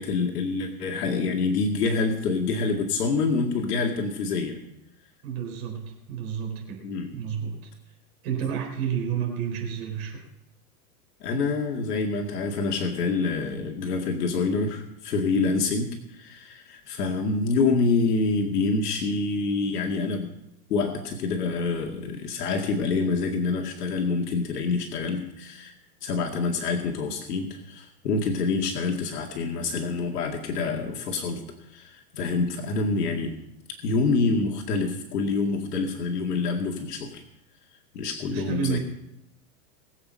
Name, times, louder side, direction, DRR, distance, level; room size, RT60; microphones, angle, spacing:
voice 1, 0.0-4.6 6.8-7.1 11.2-20.3 20.7-25.7 26.0-33.4 33.8-37.2 37.9-38.8, left 4 dB, 80° left, 2 dB, 2.3 m, -26 dB
voice 2, 5.2-6.8 7.1-7.7 8.2-10.2 38.3-38.8, right 8 dB, 40° right, 1 dB, 4.3 m, -30 dB
21.0 x 8.0 x 5.6 m, 0.87 s
supercardioid pair, 160°, 46 cm